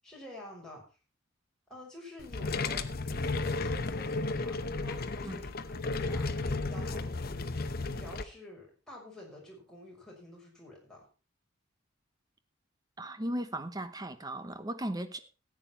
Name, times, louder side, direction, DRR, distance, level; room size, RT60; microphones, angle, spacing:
voice 1, 0.0-0.8 1.7-7.5 7.9-11.0, left 1 dB, 5° left, -3 dB, 5.9 m, -49 dB
sound 1, 2.2-8.2, left 3 dB, 50° left, 0.9 m, -33 dB
voice 2, 13.0-15.2, right 1 dB, 20° right, 10 dB, 1.0 m, -36 dB
14.5 x 8.8 x 4.5 m, 0.33 s
head